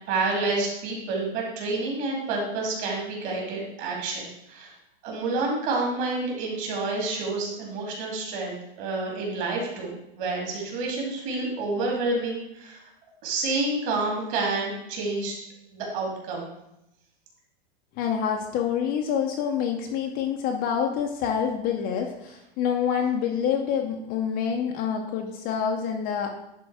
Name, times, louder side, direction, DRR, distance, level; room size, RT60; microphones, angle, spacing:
voice 1, 0.1-4.2 4.5-4.7 5.0-12.8 13.2-15.3 15.7-16.5, right 3 dB, 40° right, -1 dB, 2.8 m, -29 dB
voice 2, 17.9-26.3, left 7 dB, 30° left, 3 dB, 0.7 m, -27 dB
10.5 x 3.8 x 4.8 m, 0.85 s
supercardioid pair, 155°, 31 cm